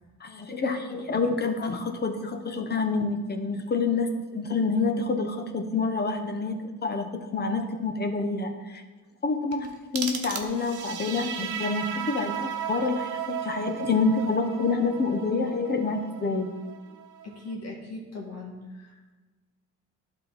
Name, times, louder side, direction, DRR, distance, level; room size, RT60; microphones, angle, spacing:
voice 1, 0.2-8.8 9.2-16.5, left 4 dB, 35° left, 6 dB, 1.0 m, -28 dB
sound 1, 9.5-10.9, right 5 dB, 50° right, 1.1 m, -36 dB
sound 2, 10.5-17.5, right 9 dB, 80° right, 0.7 m, -36 dB
voice 2, 17.2-19.1, left 2 dB, 55° left, -1 dB, 1.8 m, -39 dB
11.5 x 3.9 x 4.1 m, 1.3 s
cardioid pair, 90°, 30 cm